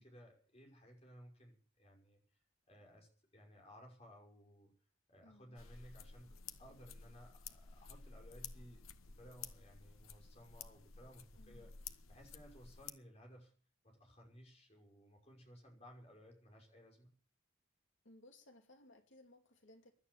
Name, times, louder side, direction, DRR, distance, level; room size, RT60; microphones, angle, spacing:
voice 1, 0.0-2.2 2.7-4.7 5.1-6.3 6.6-8.8 9.2-11.7 12.1-13.5 13.8-17.1, equal, 30° left, 1 dB, 5.7 m, -59 dB
voice 2, 5.2-5.6 11.3-11.7 18.0-19.9, left 1 dB, 65° left, 4 dB, 2.8 m, -62 dB
sound 1, 5.6-12.9, left 6 dB, 90° left, 1.1 m, -53 dB
16.5 x 11.5 x 6.8 m, 0.43 s
head